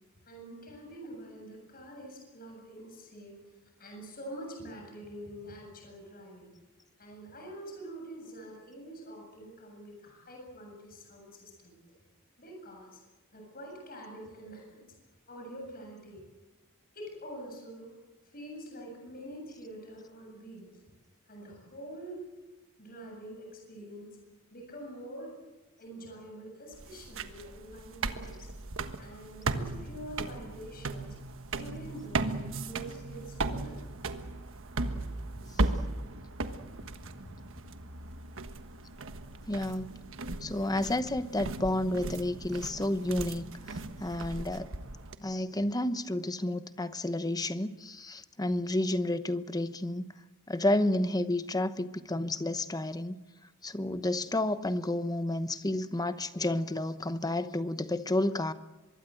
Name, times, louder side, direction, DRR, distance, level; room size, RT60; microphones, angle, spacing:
voice 1, 0.2-3.4 3.8-6.5 7.0-11.7 12.4-13.0 13.3-14.9 15.3-16.2 16.9-17.9 18.3-20.7 21.3-22.3 22.8-24.2 24.5-25.4 25.8-28.5 29.0-31.2 31.5-32.3 32.6-33.8 35.4-35.5 36.4-37.4, right 1 dB, 40° left, 7.7 m, -46 dB
sound 1, 26.7-45.2, right 2 dB, 60° right, 1.4 m, -37 dB
voice 2, 39.5-39.9 40.4-44.7 45.2-50.1 50.5-53.2 53.6-58.5, left 1 dB, 15° left, 0.9 m, -31 dB
24.5 x 22.5 x 7.8 m
head